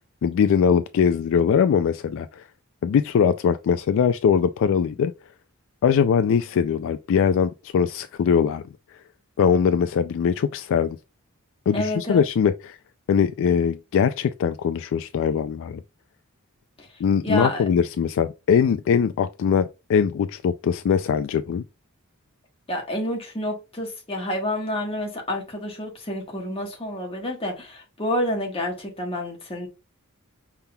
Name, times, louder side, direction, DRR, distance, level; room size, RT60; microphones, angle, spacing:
voice 1, 0.2-2.4 2.8-5.1 5.8-8.6 9.4-11.0 11.7-12.8 13.1-15.8 17.0-21.6, left 7 dB, 60° left, 0.3 m, -21 dB
voice 2, 11.7-12.2 16.8-16.9 17.2-17.6 22.7-29.7, left 1 dB, 25° left, 1.4 m, -29 dB
5.7 x 3.5 x 2.2 m
head